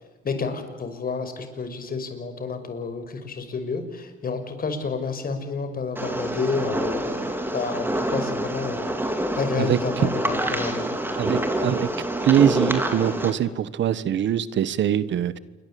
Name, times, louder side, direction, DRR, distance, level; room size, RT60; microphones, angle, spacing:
voice 1, 0.2-7.2 7.5-8.9 9.4-10.8, left 4 dB, 45° left, 8 dB, 5.6 m, -30 dB
sound 1, 6.0-13.3, right 1 dB, 10° right, 4.4 m, -27 dB
voice 2, 11.2-11.9 12.2-15.4, right 10 dB, 65° right, 16 dB, 1.4 m, -22 dB
28.0 x 23.0 x 8.6 m, 1.2 s
cardioid pair, 90°, 20 cm